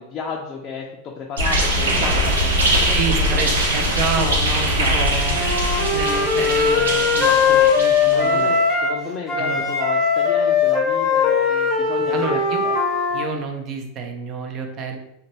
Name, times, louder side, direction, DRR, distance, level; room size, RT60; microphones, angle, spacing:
voice 1, 0.0-3.4 4.2-4.4 4.7-4.9 7.2-7.7 8.1-12.8, left 5 dB, 40° left, -1 dB, 0.4 m, -33 dB
sound 1, 1.4-8.4, equal, 85° right, 0.6 m, -21 dB
voice 2, 2.9-5.4 5.9-8.5 9.4-9.7 12.1-12.7 13.1-15.0, right 4 dB, 45° right, 4 dB, 0.5 m, -29 dB
Wind instrument woodwind instrument, 5.3-9.0 9.3-13.3, left 5 dB, 10° left, 0.8 m, -19 dB
2.5 x 2.2 x 3.0 m, 0.86 s
hypercardioid pair, 100°, 0 cm